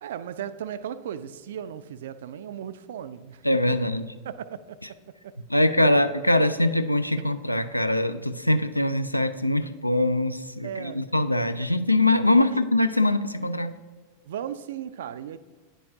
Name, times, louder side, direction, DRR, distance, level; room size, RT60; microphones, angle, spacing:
voice 1, 0.0-3.4 4.2-5.3 10.6-11.0 12.4-12.5 14.3-15.4, right 9 dB, 60° right, 0.3 m, -36 dB
voice 2, 3.4-4.1 5.5-13.7, left 1 dB, 85° left, 0.3 m, -23 dB
9.8 x 4.6 x 2.7 m
figure-of-eight pair, 90°, 0 cm